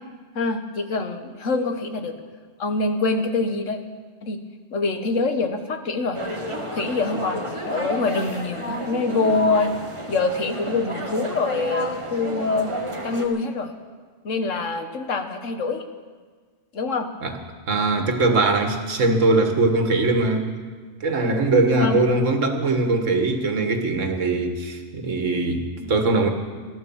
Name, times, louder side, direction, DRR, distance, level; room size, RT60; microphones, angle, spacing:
voice 1, 0.3-2.1 2.6-3.8 4.2-4.4 4.7-6.2 6.7-9.7 10.1-12.7 13.0-13.7 14.2-15.8 16.7-17.1 21.8-22.0, left 3 dB, 90° left, 7 dB, 1.6 m, -25 dB
sound 1, 6.1-13.2, right 1 dB, 25° right, 1.5 m, -31 dB
voice 2, 17.7-20.5 21.0-26.3, right 2 dB, 90° right, 5 dB, 1.9 m, -21 dB
16.5 x 12.0 x 7.2 m, 1.5 s
omnidirectional pair, 1.3 m